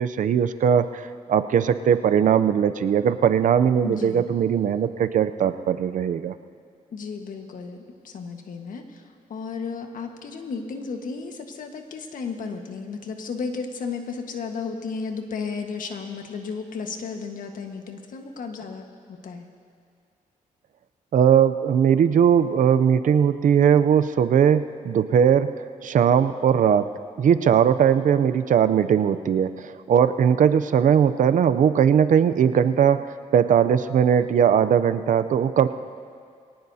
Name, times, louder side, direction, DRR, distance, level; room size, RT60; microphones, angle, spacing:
voice 1, 0.0-6.3 21.1-25.5 25.8-26.9 27.2-35.7, right 8 dB, 65° right, 11 dB, 0.6 m, -19 dB
voice 2, 3.8-4.3 6.9-9.0 9.3-19.5, left 5 dB, 70° left, 4 dB, 1.5 m, -34 dB
22.5 x 18.5 x 2.8 m, 2.3 s
cardioid pair, 95°, 14 cm